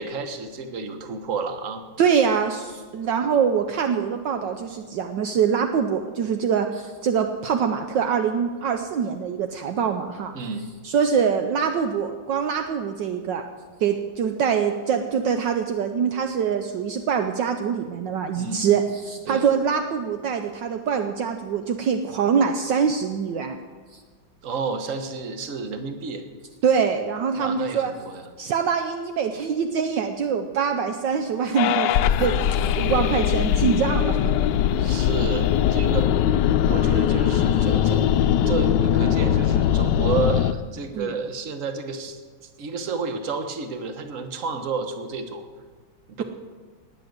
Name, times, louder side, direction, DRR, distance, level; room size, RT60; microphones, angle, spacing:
voice 1, 0.0-1.8 10.3-10.7 18.4-18.7 19.3-19.5 24.4-26.2 27.4-28.3 34.8-36.2 36.7-38.1 38.4-42.2 42.6-45.4 46.2-46.3, right 4 dB, 45° right, 7 dB, 1.5 m, -30 dB
voice 2, 2.0-10.3 10.8-13.4 13.8-23.6 23.9-24.0 26.6-27.9 28.4-31.9 32.2-34.3 40.9-41.1, right 7 dB, 70° right, 6 dB, 1.4 m, -24 dB
sound 1, 31.6-40.5, left 10 dB, 70° left, 1.1 m, -21 dB
19.0 x 7.9 x 8.0 m, 1.5 s
omnidirectional pair, 2.2 m